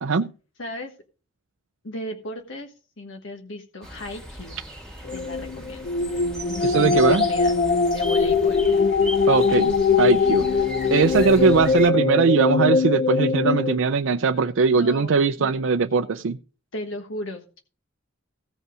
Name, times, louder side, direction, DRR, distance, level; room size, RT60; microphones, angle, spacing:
voice 1, 0.6-0.9 1.8-4.6 5.1-5.8 6.5-7.5 7.9-8.7 14.7-15.1 15.4-15.6 16.7-17.6, left 1 dB, 70° left, 3 dB, 1.3 m, -36 dB
sound 1, 3.8-11.9, equal, 5° left, 2.3 m, -38 dB
sound 2, 5.0-13.8, left 4 dB, 45° left, 0.5 m, -21 dB
voice 2, 6.6-7.3 9.3-10.6 10.9-16.4, right 4 dB, 75° right, 8 dB, 0.5 m, -20 dB
16.0 x 5.4 x 4.9 m, 0.36 s
head